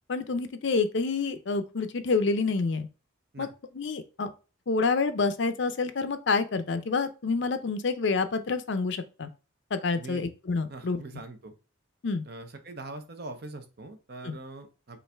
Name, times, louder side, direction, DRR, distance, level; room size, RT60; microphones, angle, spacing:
voice 1, 0.1-2.9 3.4-3.5 3.7-4.3 4.7-9.3 9.7-11.0 12.0-12.2 14.2-14.4, left 4 dB, 60° left, 0.5 m, -28 dB
voice 2, 9.9-10.3 10.7-11.5 12.2-15.0, right 2 dB, 55° right, 0.8 m, -42 dB
5.4 x 2.6 x 3.4 m
head